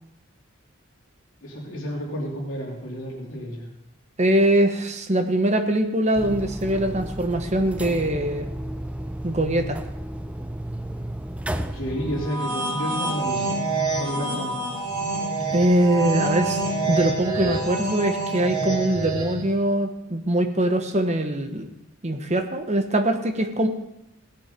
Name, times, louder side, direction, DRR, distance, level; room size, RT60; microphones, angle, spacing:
voice 1, 1.4-3.7 11.7-13.6 14.0-14.6, equal, 65° left, -3 dB, 3.2 m, -31 dB
voice 2, 4.2-8.5 9.2-9.8 15.5-16.6 16.9-21.7 22.0-23.7, right 1 dB, 30° right, 6 dB, 1.1 m, -22 dB
sound 1, 6.1-12.3, right 1 dB, 5° right, 0.5 m, -33 dB
sound 2, 12.1-19.5, right 2 dB, 85° right, 3.9 m, -27 dB
17.0 x 7.6 x 5.2 m, 0.86 s
head